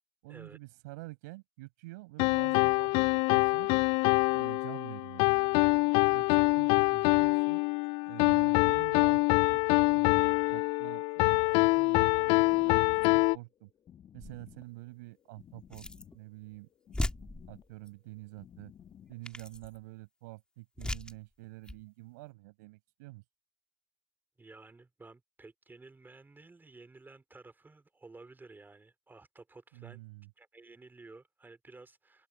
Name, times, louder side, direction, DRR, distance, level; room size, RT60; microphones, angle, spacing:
voice 1, 0.2-3.7 4.3-5.5 6.1-7.7 8.1-13.7 14.1-15.9 16.1-16.7 17.5-18.7 19.1-23.2 29.7-30.3, right 23 dB, 80° right, 5.4 m, -48 dB
sound 1, 2.2-13.4, left 28 dB, 70° left, 0.4 m, -25 dB
sound 2, 12.4-19.2, left 9 dB, 50° left, 2.2 m, -56 dB
sound 3, 14.2-14.6 15.7-16.2 16.5-16.6 16.9-17.9 18.8-18.9 19.2-19.8 20.8-21.2 21.6-21.8, left 1 dB, 10° left, 3.2 m, -38 dB
voice 2, 24.4-30.0 30.4-32.3, right 3 dB, 20° right, 3.6 m, -53 dB
hypercardioid pair, 60°, 10 cm